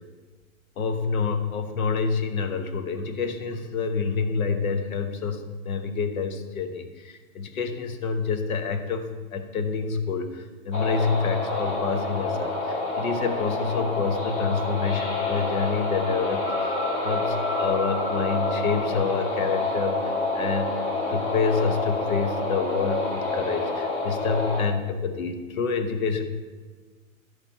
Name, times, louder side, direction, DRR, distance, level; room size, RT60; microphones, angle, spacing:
voice 1, 0.8-16.8 17.0-20.8 21.1-26.2, left 5 dB, 70° left, 8 dB, 1.1 m, -27 dB
sound 1, 10.7-24.6, left 2 dB, 15° left, 0.6 m, -28 dB
12.5 x 6.5 x 2.8 m, 1.4 s
hypercardioid pair, 150°, 43 cm